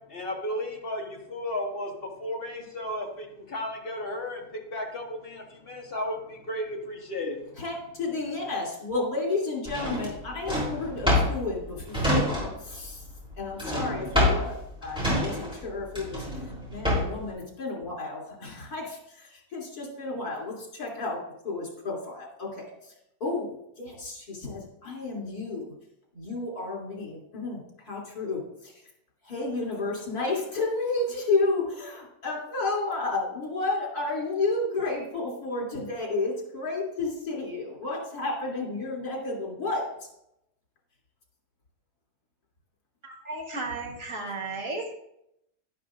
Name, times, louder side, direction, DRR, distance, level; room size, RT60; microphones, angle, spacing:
voice 1, 0.1-7.6, left 1 dB, 35° left, 0 dB, 1.6 m, -34 dB
voice 2, 7.6-13.0 13.4-14.6 14.8-16.3 16.7-21.2 21.4-22.9 23.2-25.6 26.1-28.8 29.2-39.8, left 3 dB, 70° left, -3 dB, 3.5 m, -31 dB
Drawer open or close, 9.7-12.8 13.0-17.3, left 1 dB, 5° right, 3.1 m, -27 dB
voice 3, 43.0-44.9, right 3 dB, 55° right, 1 dB, 1.7 m, -34 dB
11.0 x 11.0 x 2.5 m, 0.80 s
omnidirectional pair, 1.7 m